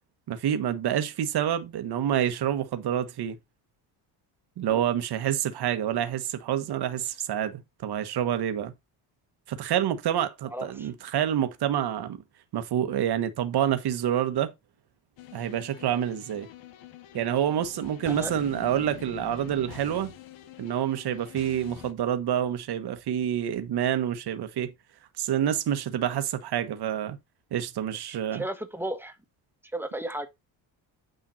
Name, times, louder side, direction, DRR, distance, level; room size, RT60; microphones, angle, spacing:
voice 1, 0.3-3.4 4.6-8.7 9.5-12.2 12.5-14.5 15.3-16.5 17.1-20.1 20.6-24.7 25.2-27.2 27.5-28.4, right 10 dB, 60° right, 1.5 m, -27 dB
voice 2, 10.5-10.9 18.1-18.3 28.3-29.2 29.7-30.3, right 1 dB, 5° right, 1.7 m, -34 dB
sound 1, 15.2-21.9, left 13 dB, 85° left, 1.6 m, -45 dB
9.3 x 5.6 x 4.3 m
cardioid pair, 110°, 45 cm